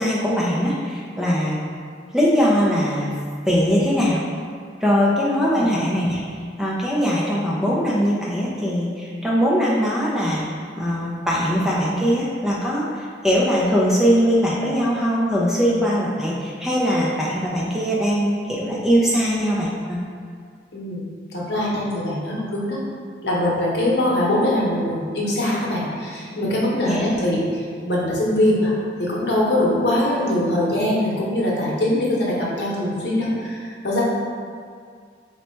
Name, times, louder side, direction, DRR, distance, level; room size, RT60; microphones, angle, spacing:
voice 1, 0.0-1.6 2.1-3.1 3.5-4.2 4.8-6.2 6.6-10.4 10.8-20.0 26.8-27.1, equal, 5° right, -6 dB, 0.4 m, -21 dB
voice 2, 20.7-21.0 21.3-22.8 23.2-28.7 29.0-34.0, left 1 dB, 70° left, -5 dB, 0.9 m, -22 dB
3.9 x 2.2 x 4.3 m, 2.1 s
head